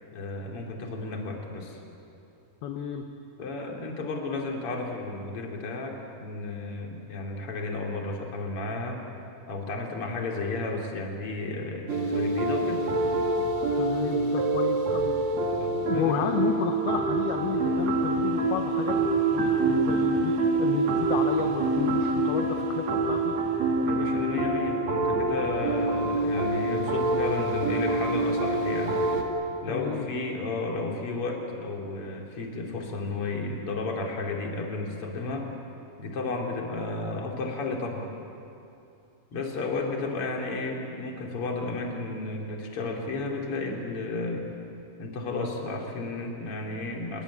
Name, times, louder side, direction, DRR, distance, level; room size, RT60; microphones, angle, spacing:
voice 1, 0.1-1.8 3.4-9.0 9.5-12.9 15.6-16.2 23.8-29.0 29.6-35.5 36.0-38.0 39.3-44.5 45.0-47.2, left 3 dB, 35° left, 0 dB, 3.3 m, -33 dB
voice 2, 2.6-3.1 13.8-15.2 15.9-23.4 29.7-30.1 39.9-40.2, left 8 dB, 70° left, 4 dB, 2.7 m, -32 dB
sound 1, 11.9-29.2, right 2 dB, 45° right, 2.8 m, -26 dB
26.5 x 21.5 x 8.5 m, 2.7 s
omnidirectional pair, 5.3 m